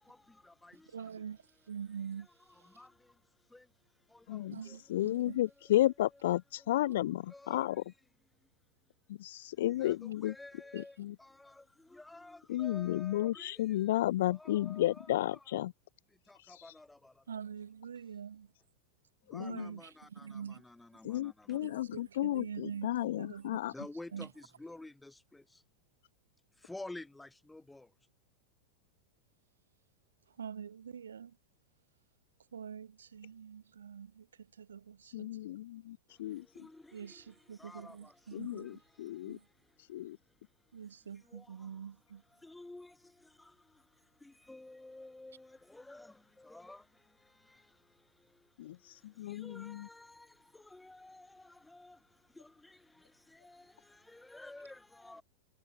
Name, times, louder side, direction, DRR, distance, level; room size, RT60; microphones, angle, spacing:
voice 1, 0.0-1.3 2.0-5.7 6.8-6.9 7.3-7.8 8.3-8.5 8.8-8.9 9.3-15.5 16.1-17.4 19.2-21.8 23.7-25.6 26.5-28.0 36.1-55.2, left 2 dB, 5° left, 7.2 m, -53 dB
voice 2, 0.9-1.4 1.7-2.3 4.5-5.4 17.3-18.5 19.4-20.6 21.6-23.5 24.1-24.3 30.3-31.4 32.5-35.4 36.9-38.8 39.3-39.5 40.7-42.2, right 7 dB, 70° right, 3.5 m, -45 dB
voice 3, 4.3-4.6 4.9-7.8 9.1-10.3 10.7-11.2 12.5-15.7 19.3-19.7 21.0-23.7 35.1-36.5 38.3-39.4 39.9-40.2 48.6-49.9, left 14 dB, 55° left, 2.0 m, -33 dB
figure-of-eight pair, 90°, 0 cm